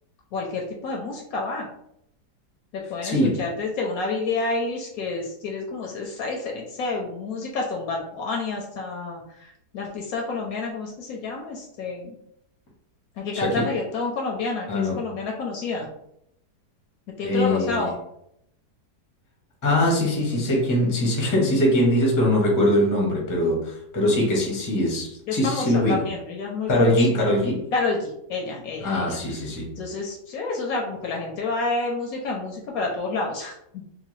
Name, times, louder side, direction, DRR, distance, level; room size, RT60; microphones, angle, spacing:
voice 1, 0.3-1.7 2.7-12.2 13.2-15.9 17.2-17.9 25.3-27.2 27.7-29.2 29.8-33.8, left 3 dB, 70° left, 1 dB, 0.9 m, -29 dB
voice 2, 3.0-3.4 13.3-13.7 14.7-15.0 17.2-17.9 19.6-25.9 26.7-27.7 28.8-29.8, left 1 dB, 20° left, -2 dB, 0.5 m, -22 dB
2.9 x 2.1 x 3.1 m, 0.75 s
omnidirectional pair, 1.8 m